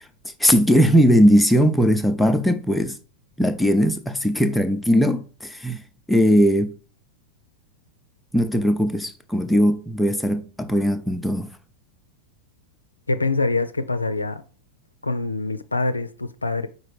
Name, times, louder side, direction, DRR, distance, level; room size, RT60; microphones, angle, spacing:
voice 1, 0.4-3.0 3.4-5.8 6.1-6.8 8.3-11.5, equal, 5° left, 0.6 m, -19 dB
voice 2, 13.1-14.4 15.0-16.7, left 3 dB, 80° left, 0.5 m, -24 dB
5.0 x 4.1 x 4.8 m
figure-of-eight pair, 90°, 0 cm